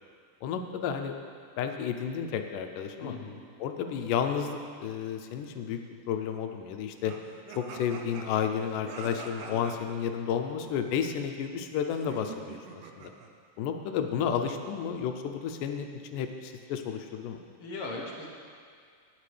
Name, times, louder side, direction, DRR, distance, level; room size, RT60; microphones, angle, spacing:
voice 1, 0.4-1.2 1.6-3.1 3.6-5.8 6.1-7.1 7.5-13.1 13.6-17.4, left 8 dB, 85° left, 6 dB, 2.2 m, -32 dB
voice 2, 3.0-3.4 9.5-9.7 17.6-18.3, left 2 dB, 65° left, -2 dB, 1.4 m, -39 dB
sound 1, 7.1-10.0 11.9-13.3, right 5 dB, 85° right, 2.4 m, -45 dB
18.0 x 7.5 x 3.3 m, 2.1 s
omnidirectional pair, 3.7 m